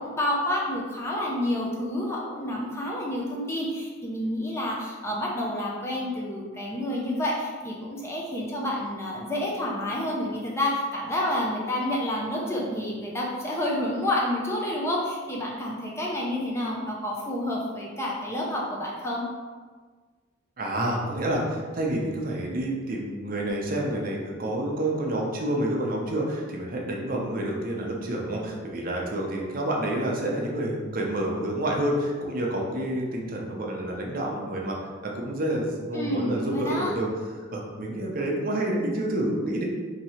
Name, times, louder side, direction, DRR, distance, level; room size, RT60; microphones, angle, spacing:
voice 1, 0.0-19.2 35.9-36.9, left 1 dB, 15° left, -4 dB, 0.5 m, -29 dB
voice 2, 20.6-34.8 35.0-37.1 37.5-39.7, right 1 dB, 45° right, -1 dB, 0.6 m, -28 dB
3.0 x 2.7 x 4.2 m, 1.5 s
head